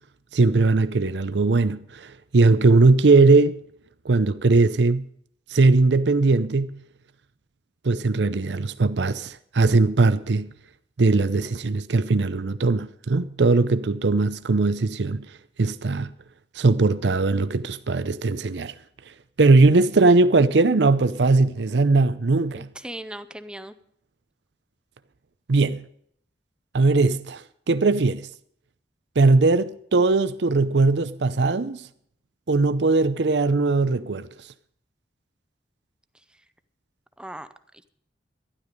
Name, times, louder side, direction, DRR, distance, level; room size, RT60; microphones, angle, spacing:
voice 1, 0.3-3.6 4.0-5.1 5.5-6.8 7.8-10.5 11.0-15.2 15.6-16.1 16.6-18.7 19.4-22.7 25.5-25.8 26.7-27.4 27.7-28.3 29.2-31.8 32.5-34.3, right 3 dB, 80° right, 0.6 m, -19 dB
voice 2, 22.5-23.8 36.3-36.4 37.2-37.9, right 1 dB, 5° right, 0.6 m, -39 dB
12.5 x 11.5 x 5.2 m
head